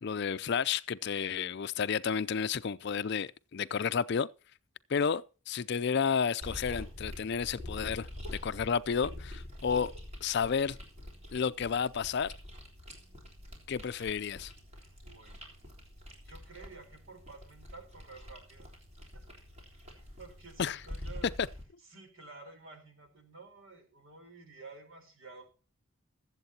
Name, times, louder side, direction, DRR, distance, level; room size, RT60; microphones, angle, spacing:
voice 1, 0.0-4.3 4.9-9.9 10.2-10.8 11.3-12.3 13.7-14.5 20.6-20.8 21.4-21.5, left 6 dB, 55° left, 0.4 m, -31 dB
sound 1, 6.4-21.6, left 1 dB, 30° right, 3.6 m, -46 dB
voice 2, 14.7-15.5 16.2-18.8 19.1-19.2 19.7-21.3 21.8-25.4, right 3 dB, 65° right, 3.9 m, -52 dB
21.5 x 8.0 x 2.8 m
head